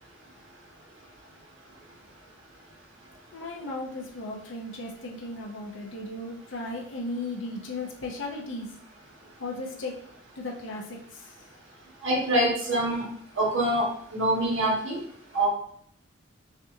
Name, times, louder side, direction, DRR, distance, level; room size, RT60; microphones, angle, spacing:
voice 1, 3.3-8.7 9.4-9.9 10.4-11.4, left 2 dB, 75° left, 0 dB, 0.7 m, -36 dB
voice 2, 12.0-13.0 13.4-15.0 15.3-15.5, right 1 dB, 90° right, -5 dB, 1.7 m, -25 dB
5.9 x 2.5 x 2.7 m, 0.64 s
head